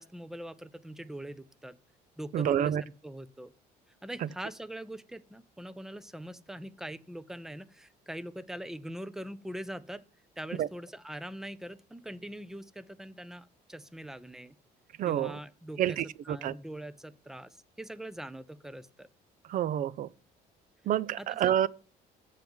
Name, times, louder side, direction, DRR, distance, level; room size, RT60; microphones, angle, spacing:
voice 1, 0.0-1.8 2.2-2.7 3.0-3.5 4.0-10.0 10.4-14.5 15.0-16.0 16.3-19.1 21.2-21.5, right 1 dB, 5° right, 0.5 m, -42 dB
voice 2, 2.3-2.8 4.2-4.3 10.5-10.7 15.0-15.4 15.8-16.6 19.4-20.1 20.8-21.7, right 10 dB, 55° right, 0.4 m, -28 dB
7.7 x 4.6 x 7.1 m
cardioid pair, 110°, 17 cm